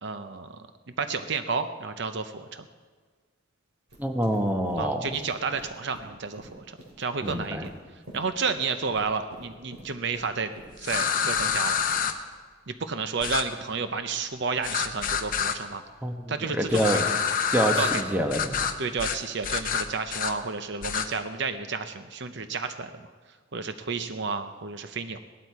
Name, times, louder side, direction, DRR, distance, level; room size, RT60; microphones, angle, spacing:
voice 1, 0.0-0.6 1.0-2.7 4.8-7.7 8.1-10.5 10.8-11.8 12.7-15.8 16.3-17.2 17.8-18.2 18.8-23.0 23.5-25.2, right 4 dB, 55° right, 9 dB, 0.7 m, -31 dB
sound 1, 3.9-10.8, right 1 dB, 85° right, 3.7 m, -48 dB
voice 2, 4.0-5.1 7.2-7.7 16.0-16.2 16.5-17.1 17.5-18.7, equal, 10° right, 4 dB, 1.0 m, -26 dB
sound 2, 10.8-12.1 13.2-13.4 14.6-15.6 16.7-18.0 18.3-18.7 19.0-19.2 19.4-20.3 20.8-21.1, left 7 dB, 40° left, 0.9 m, -27 dB
18.5 x 12.5 x 4.7 m, 1.5 s
head